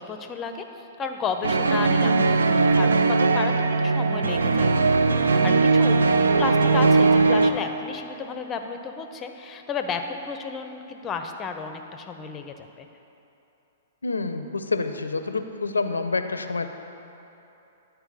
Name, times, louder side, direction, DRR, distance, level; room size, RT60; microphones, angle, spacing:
voice 1, 0.0-4.9 5.1-5.9 6.4-12.9, left 5 dB, 25° left, 6 dB, 0.6 m, -33 dB
sound 1, 1.4-7.5, right 3 dB, 75° right, 0.4 m, -19 dB
voice 2, 14.0-16.7, left 3 dB, 80° left, 8 dB, 0.5 m, -27 dB
10.0 x 4.5 x 5.4 m, 2.9 s
figure-of-eight pair, 110°, 0 cm